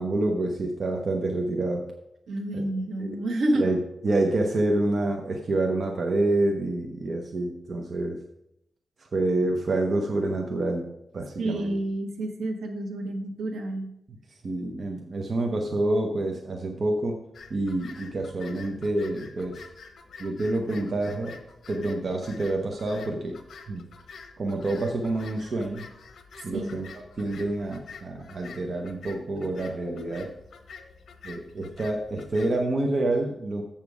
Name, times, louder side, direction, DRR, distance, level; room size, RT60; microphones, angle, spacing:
voice 1, 0.0-1.9 2.5-2.7 3.0-3.3 3.5-3.8 4.0-8.2 9.0-10.9 11.1-11.7 14.3-17.2 17.5-19.6 20.2-21.4 21.7-23.4 23.7-23.8 24.4-25.9 26.4-30.3 31.2-33.6, right 2 dB, 45° right, 2 dB, 0.8 m, -27 dB
voice 2, 2.3-3.6 11.4-13.9 26.5-26.8, right 1 dB, 85° right, 5 dB, 1.2 m, -29 dB
sound 1, 17.3-32.5, left 5 dB, 70° left, 0.9 m, -48 dB
7.2 x 7.1 x 4.8 m, 0.81 s
wide cardioid pair, 140°, 0 cm